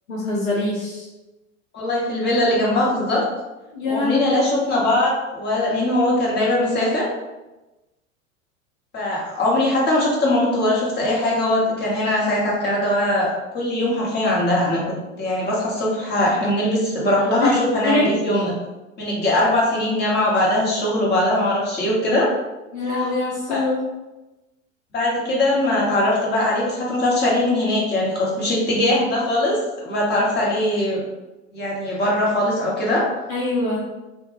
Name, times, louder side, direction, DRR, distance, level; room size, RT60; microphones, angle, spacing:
voice 1, 0.1-1.1 3.7-4.3 17.4-17.6 17.8-18.1 22.7-23.8 33.3-33.9, left 2 dB, 85° left, -6 dB, 0.8 m, -23 dB
voice 2, 1.7-3.2 3.9-7.1 8.9-13.3 13.5-14.8 15.2-18.5 19.0-22.3 23.5-23.6 24.9-31.0 31.5-33.0, left 1 dB, 25° left, -4 dB, 0.9 m, -21 dB
2.2 x 2.2 x 3.0 m, 1.0 s
figure-of-eight pair, 80°, 40 cm